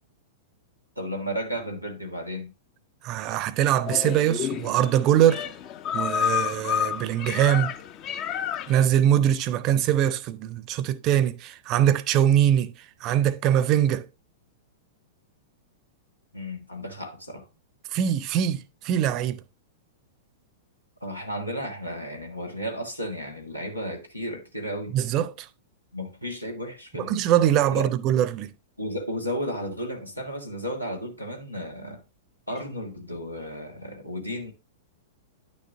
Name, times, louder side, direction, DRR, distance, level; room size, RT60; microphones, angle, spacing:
voice 1, 0.9-2.5 16.3-17.5 21.0-25.0 25.9-27.2 27.7-27.9 28.8-32.0 32.5-34.5, equal, 90° left, 1.5 m, -33 dB
voice 2, 3.0-5.5 5.9-7.7 8.7-14.1 17.9-19.4 24.9-25.5 27.0-28.5, right 10 dB, 35° right, 0.6 m, -22 dB
sound 1, 3.8-8.8, left 9 dB, 35° left, 0.6 m, -30 dB
9.9 x 6.5 x 2.5 m
figure-of-eight pair, 100°, 0 cm